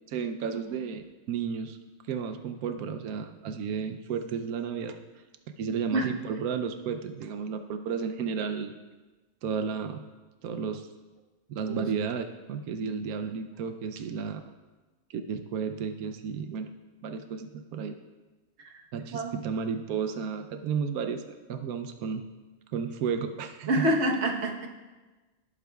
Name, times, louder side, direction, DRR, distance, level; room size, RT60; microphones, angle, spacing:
voice 1, 0.1-1.8 2.1-5.0 5.6-8.7 9.4-10.1 10.4-10.9 11.5-14.4 15.1-16.7 17.0-18.0 18.9-22.2 22.7-23.9, right 6 dB, 90° right, 7 dB, 1.1 m, -33 dB
voice 2, 23.7-24.7, right 1 dB, 55° right, 1 dB, 1.3 m, -27 dB
18.5 x 8.5 x 2.3 m, 1.2 s
omnidirectional pair, 1.5 m